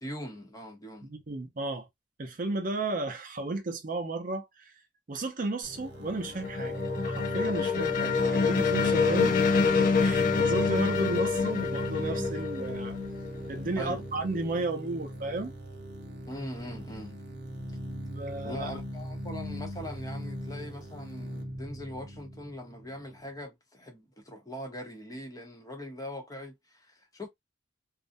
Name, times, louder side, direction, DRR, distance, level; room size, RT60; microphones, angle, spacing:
voice 1, 0.0-1.1 13.8-14.0 16.3-17.2 18.4-27.3, equal, 20° left, 0.8 m, -41 dB
voice 2, 1.0-1.9 2.2-4.7 5.1-6.8 7.0-9.4 9.6-13.0 13.5-15.5 18.1-18.7, right 2 dB, 50° right, 0.5 m, -33 dB
sound 1, 5.6-23.2, equal, 70° right, 0.9 m, -38 dB
sound 2, 5.9-13.6, left 5 dB, 50° left, 0.4 m, -26 dB
2.4 x 2.1 x 2.5 m
head